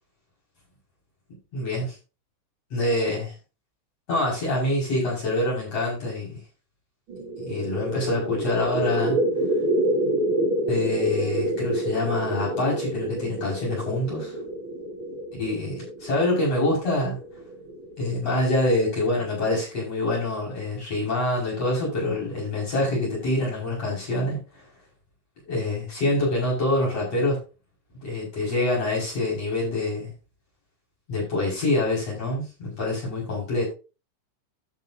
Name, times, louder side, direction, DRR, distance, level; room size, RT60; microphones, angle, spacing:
voice 1, 1.5-2.0 2.7-3.3 4.1-6.3 7.4-9.2 10.6-14.3 15.4-17.2 18.0-24.6 25.4-27.4 28.0-30.1 31.1-33.7, left 2 dB, 30° left, -4 dB, 6.2 m, -26 dB
sound 1, 7.1-18.6, right 1 dB, 80° right, 1.1 m, -28 dB
14.0 x 7.6 x 2.7 m, 0.32 s
omnidirectional pair, 5.6 m